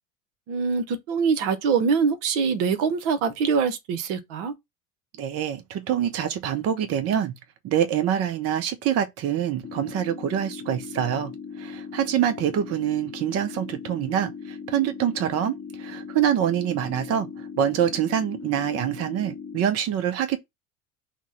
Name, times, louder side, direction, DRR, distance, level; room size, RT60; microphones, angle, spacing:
voice 1, 0.5-4.5, right 5 dB, 60° right, 0.9 m, -24 dB
voice 2, 5.2-7.3 7.6-20.4, right 10 dB, 35° right, 0.7 m, -25 dB
sound 1, 9.6-19.6, left 6 dB, 20° left, 0.8 m, -39 dB
5.8 x 2.2 x 4.1 m
figure-of-eight pair, 70°, 42 cm